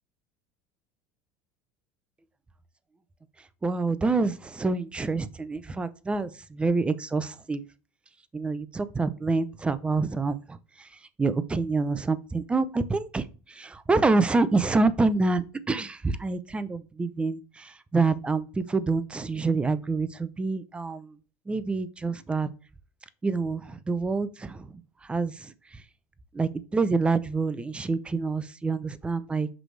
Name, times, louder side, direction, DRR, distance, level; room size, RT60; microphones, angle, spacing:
voice 1, 3.6-7.6 8.3-10.4 11.2-21.1 21.5-22.5 23.2-24.8 25.1-25.5 26.3-29.5, right 3 dB, 15° right, 0.6 m, -27 dB
6.1 x 4.8 x 3.3 m
supercardioid pair, 120°, 8 cm